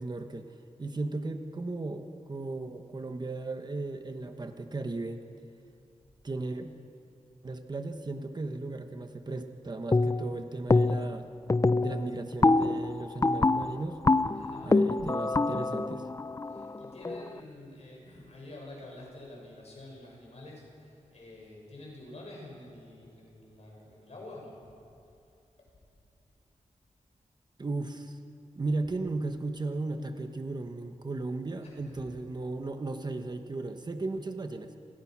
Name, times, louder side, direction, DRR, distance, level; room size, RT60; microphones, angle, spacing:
voice 1, 0.0-5.2 6.2-6.7 7.4-11.3 11.8-14.0 14.6-16.1 27.6-28.2 28.5-34.7, right 2 dB, 35° right, 6 dB, 1.2 m, -36 dB
sound 1, 9.9-10.4 10.7-11.2 11.5-17.3, left 3 dB, 25° left, 0.5 m, -26 dB
voice 2, 14.3-14.8 16.4-24.7 31.6-32.0, left 1 dB, 55° left, -1 dB, 6.8 m, -48 dB
27.5 x 20.5 x 6.1 m, 2.6 s
wide cardioid pair, 155°, 13 cm